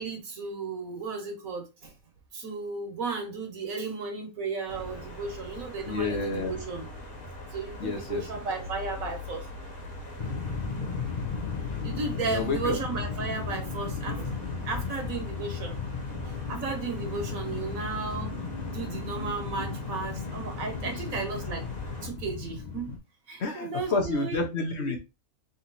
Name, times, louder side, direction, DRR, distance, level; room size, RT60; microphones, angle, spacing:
voice 1, 0.0-1.9 2.3-6.9 7.5-9.5 11.8-14.4 14.6-15.8 16.5-18.3 18.7-21.7 22.0-22.9 23.3-24.5, right 4 dB, 70° right, 1.6 m, -34 dB
sound 1, 4.7-22.1, left 2 dB, 85° left, 1.9 m, -42 dB
voice 2, 5.9-6.5 7.8-8.2 12.2-12.8 23.4-25.0, left 3 dB, 55° left, 1.2 m, -29 dB
sound 2, 10.2-23.0, left 5 dB, 35° left, 0.8 m, -35 dB
3.9 x 3.0 x 4.0 m
omnidirectional pair, 1.5 m